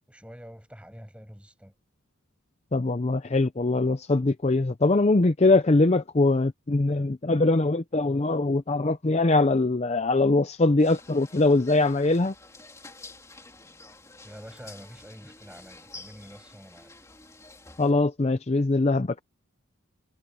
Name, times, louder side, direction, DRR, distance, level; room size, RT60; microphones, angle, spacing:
voice 1, 0.1-1.8 14.2-17.0, equal, 5° right, 7.9 m, -46 dB
voice 2, 2.7-12.3 17.8-19.2, left 2 dB, 30° left, 0.5 m, -22 dB
sound 1, 10.8-17.9, left 3 dB, 15° left, 3.4 m, -48 dB
head